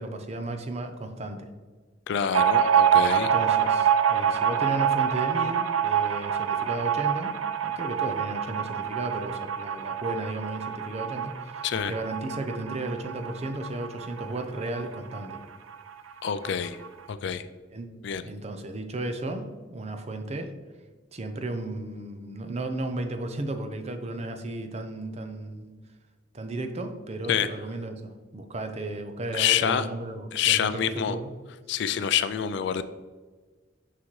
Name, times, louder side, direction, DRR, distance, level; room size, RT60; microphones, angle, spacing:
voice 1, 0.0-1.5 3.1-7.3 7.6-15.4 17.7-17.9 18.2-20.5 21.1-25.7 26.3-31.3, right 2 dB, 35° right, 7 dB, 0.6 m, -34 dB
voice 2, 2.1-3.3 11.6-11.9 16.2-16.8 17.1-17.5 18.0-18.2 27.3-27.5 29.3-29.9 30.3-31.2 31.7-32.8, left 9 dB, 60° left, 12 dB, 0.3 m, -26 dB
sound 1, 2.3-15.4 15.7-15.8 16.1-16.9, right 8 dB, 80° right, 0.4 m, -26 dB
6.1 x 5.8 x 3.1 m, 1.4 s
head